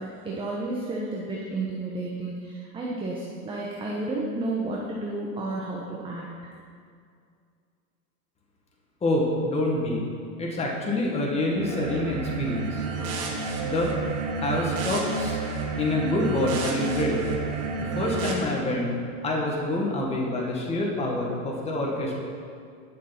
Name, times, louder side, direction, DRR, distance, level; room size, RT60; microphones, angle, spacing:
voice 1, 0.0-6.5, right 2 dB, 10° right, -4 dB, 1.2 m, -32 dB
voice 2, 9.0-10.0 10.4-12.9 13.5-13.9 14.4-15.4 15.8-17.4 17.8-18.9 19.2-22.1, left 1 dB, 15° left, -2 dB, 1.7 m, -26 dB
sound 1, 11.5-18.3, right 4 dB, 35° right, 1.7 m, -30 dB
12.0 x 6.8 x 5.9 m, 2.3 s
supercardioid pair, 135°, 44 cm